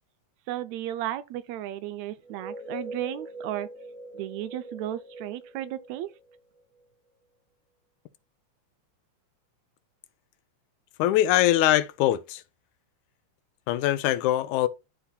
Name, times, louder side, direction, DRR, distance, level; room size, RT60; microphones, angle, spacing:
voice 1, 0.5-3.7 4.1-6.1, right 13 dB, 80° right, 1.8 m, -34 dB
sound 1, 2.2-6.8, right 1 dB, 50° left, 3.7 m, -42 dB
voice 2, 11.0-12.4 13.7-14.7, left 13 dB, 90° left, 2.1 m, -22 dB
12.5 x 4.2 x 2.3 m
omnidirectional pair, 3.4 m